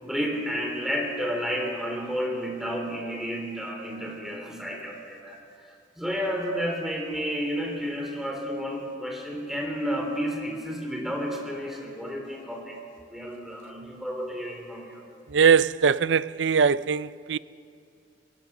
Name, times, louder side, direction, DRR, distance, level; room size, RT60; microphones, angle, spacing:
voice 1, 0.0-5.4 5.6-12.8 13.1-15.1, equal, ahead, 3.7 m, -31 dB
voice 2, 15.3-17.4, right 6 dB, 80° right, 0.5 m, -21 dB
22.5 x 21.0 x 6.1 m
head